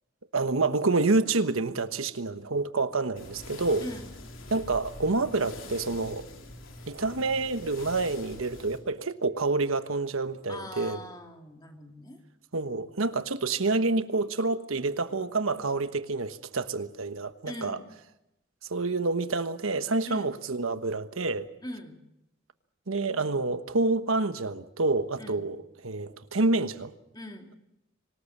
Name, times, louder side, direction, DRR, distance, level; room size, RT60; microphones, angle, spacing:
voice 1, 0.3-3.9 4.5-6.2 6.9-11.0 12.5-17.8 18.7-21.5 22.9-25.6 25.8-26.9, right 3 dB, 90° right, 1.2 m, -28 dB
sound 1, 3.2-8.8, left 2 dB, 75° left, 3.7 m, -44 dB
voice 2, 10.5-12.2 17.4-17.9 20.1-20.3 21.6-22.0 25.2-25.4 27.1-27.5, left 1 dB, 20° left, 2.6 m, -41 dB
25.5 x 19.0 x 7.3 m
head